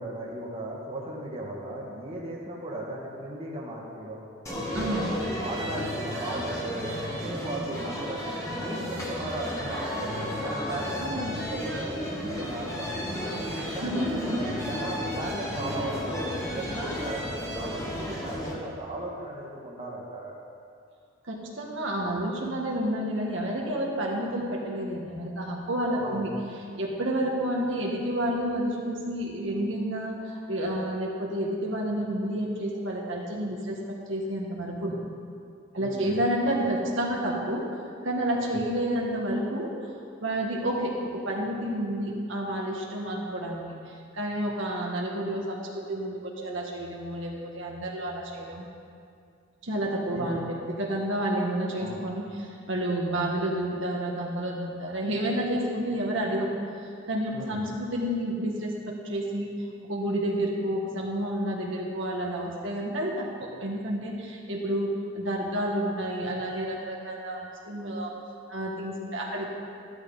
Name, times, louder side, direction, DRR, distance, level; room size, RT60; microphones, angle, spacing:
voice 1, 0.0-4.2 4.8-8.2 8.5-13.2 13.7-20.3 26.0-26.2 35.8-36.2 38.4-38.6 50.1-50.4 51.8-52.0 57.3-57.7, right 1 dB, 30° right, -4 dB, 1.8 m, -37 dB
sound 1, 4.5-18.5, equal, 15° left, 1.8 m, -33 dB
voice 2, 4.7-5.1 11.0-11.3 13.8-14.6 21.3-26.3 26.8-33.8 34.1-35.0 35.7-37.6 38.0-39.7 40.2-48.7 49.6-56.6 56.8-59.5 59.9-64.9 65.1-68.1 68.5-69.5, right 1 dB, 65° right, -2 dB, 1.7 m, -30 dB
14.5 x 12.5 x 4.0 m, 2.3 s
head